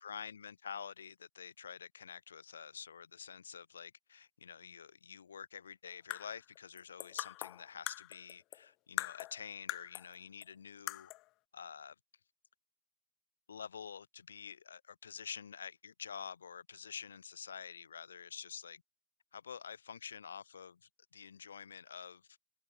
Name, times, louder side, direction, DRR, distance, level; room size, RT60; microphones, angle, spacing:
voice 1, 0.0-11.1 11.5-11.9 13.5-18.8 19.3-22.3, left 7 dB, 70° left, 2.6 m, -48 dB
sound 1, 5.9-8.7 9.0-10.1 10.4-10.5 10.9-11.3, left 20 dB, 40° left, 0.4 m, -42 dB
figure-of-eight pair, 90°, 0 cm